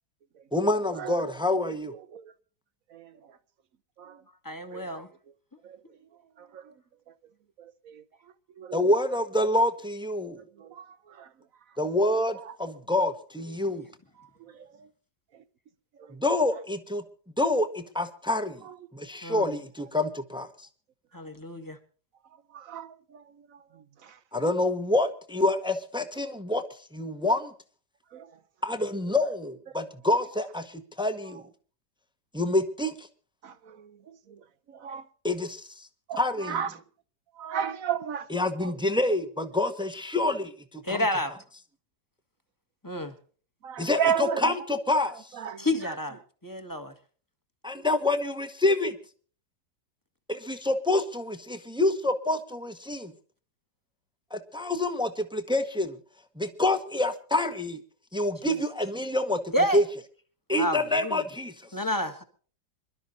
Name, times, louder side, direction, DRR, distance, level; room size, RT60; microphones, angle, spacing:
voice 1, 0.5-1.9 8.7-10.4 11.8-13.8 16.1-17.0 17.4-18.6 18.9-20.5 24.3-26.6 26.9-27.5 28.6-31.4 32.3-33.1 35.2-35.6 36.2-36.6 38.3-41.0 43.8-45.1 47.6-48.9 50.3-53.1 54.3-55.9 56.4-57.8 58.1-59.4 59.7-59.8 60.5-61.5, left 2 dB, 5° right, 1.0 m, -27 dB
voice 2, 4.4-5.1 19.2-19.5 21.1-21.8 40.8-41.3 42.8-43.1 45.6-46.9 58.4-58.6 59.5-59.8 60.6-61.2 61.7-62.2, left 1 dB, 10° left, 1.5 m, -30 dB
voice 3, 8.6-8.9 10.8-10.9 22.5-22.9 28.1-28.2 33.4-33.9 34.8-35.0 36.1-36.2 36.5-36.7 37.4-38.3 38.6-38.7 43.6-44.5 45.4-45.6, right 8 dB, 60° right, 1.1 m, -31 dB
26.5 x 12.0 x 2.7 m
omnidirectional pair, 1.8 m